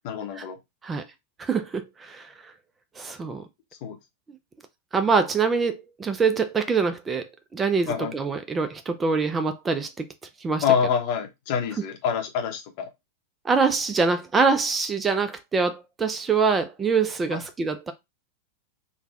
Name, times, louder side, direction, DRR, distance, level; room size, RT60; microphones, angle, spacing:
voice 1, 0.0-0.6 3.8-4.0 7.9-8.1 10.6-12.9 17.3-17.4, left 7 dB, 45° left, 0.7 m, -26 dB
voice 2, 1.4-2.3 3.0-3.4 4.9-7.2 7.5-9.9 10.4-10.6 13.4-17.9, right 5 dB, 15° right, 0.3 m, -24 dB
3.2 x 2.1 x 2.3 m
figure-of-eight pair, 90°, 0 cm